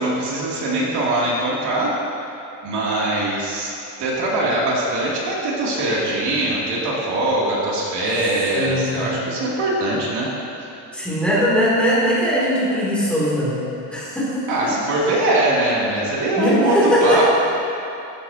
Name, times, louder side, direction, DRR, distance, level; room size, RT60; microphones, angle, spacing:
voice 1, 0.0-2.0 2.6-3.7 4.0-10.3 10.6-10.7 14.5-17.3, right 1 dB, 65° right, -5 dB, 3.2 m, -22 dB
voice 2, 8.5-9.2 10.9-13.6 13.9-14.7 16.4-17.3, equal, 5° left, -8 dB, 3.2 m, -20 dB
16.5 x 14.5 x 3.0 m, 2.7 s
cardioid pair, 180°, 43 cm